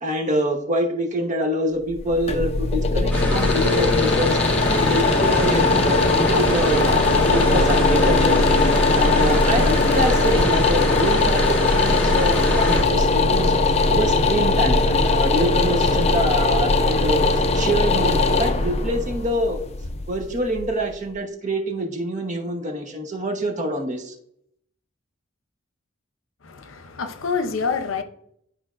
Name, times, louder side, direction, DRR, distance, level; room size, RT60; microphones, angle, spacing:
voice 1, 0.0-7.0 7.3-8.5 8.9-13.5 13.9-19.6 20.1-24.1, equal, 40° right, 1.0 m, -25 dB
Bathroom Extractor Fan A, 1.9-20.8, left 3 dB, 35° left, 0.5 m, -19 dB
sound 1, 3.1-12.8, left 1 dB, 10° left, 1.9 m, -26 dB
voice 2, 26.4-28.0, left 5 dB, 90° left, 0.7 m, -27 dB
11.0 x 4.4 x 2.5 m
head